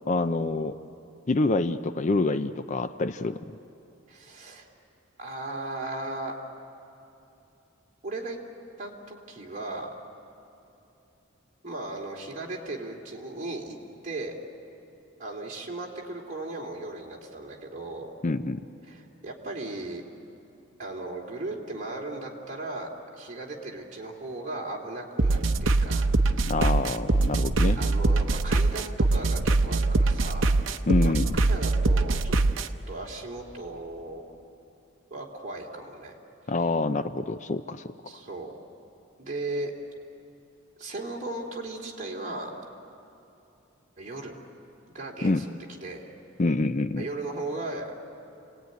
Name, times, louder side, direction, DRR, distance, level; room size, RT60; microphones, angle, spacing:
voice 1, 0.1-0.8 1.3-3.4 18.2-18.6 26.5-27.8 30.9-31.3 36.5-37.9 45.2-45.4 46.4-47.1, left 2 dB, 35° left, 11 dB, 0.5 m, -26 dB
voice 2, 4.1-4.7 5.2-6.3 8.0-8.4 8.8-9.9 11.6-13.7 14.0-14.4 15.2-18.1 18.9-20.0 20.8-26.5 27.8-32.3 32.9-34.2 35.1-36.1 38.1-38.5 39.2-39.7 40.8-42.5 44.0-44.4 44.9-45.5 45.8-46.1 47.0-47.9, right 2 dB, 40° right, -1 dB, 3.1 m, -37 dB
sound 1, 25.2-32.7, right 2 dB, 70° right, 0.9 m, -23 dB
29.0 x 20.0 x 9.4 m, 2.9 s
head